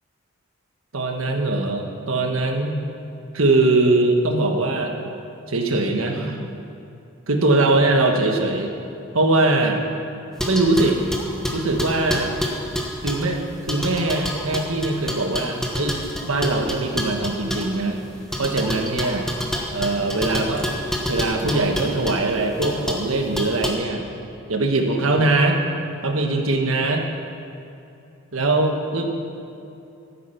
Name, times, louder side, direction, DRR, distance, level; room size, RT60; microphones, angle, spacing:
voice 1, 0.9-2.7 3.3-4.9 5.5-6.4 7.3-8.7 9.1-9.8 10.5-11.0 11.5-12.3 13.0-13.4 13.7-18.0 18.4-19.3 19.7-20.7 21.1-24.1 24.5-25.6 26.0-27.0 28.3-29.1, right 2 dB, 85° right, 3 dB, 1.4 m, -21 dB
sound 1, 10.4-13.3 13.7-17.7 18.3-22.2 22.6-23.1 23.4-23.7, equal, 5° left, 1.1 m, -28 dB
14.0 x 8.4 x 5.8 m, 2.8 s
head